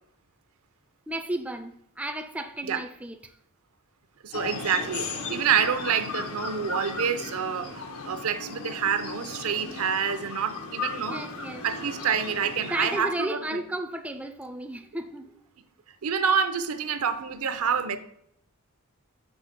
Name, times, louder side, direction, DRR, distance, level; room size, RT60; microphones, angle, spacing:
voice 1, 1.1-3.3 11.0-11.7 12.7-15.3, right 1 dB, 5° right, 0.3 m, -33 dB
voice 2, 4.2-11.2 11.6-13.6 16.0-18.0, right 7 dB, 80° right, 0.6 m, -27 dB
sound 1, 4.3-13.0, left 3 dB, 85° left, 1.1 m, -36 dB
6.0 x 4.2 x 5.1 m
head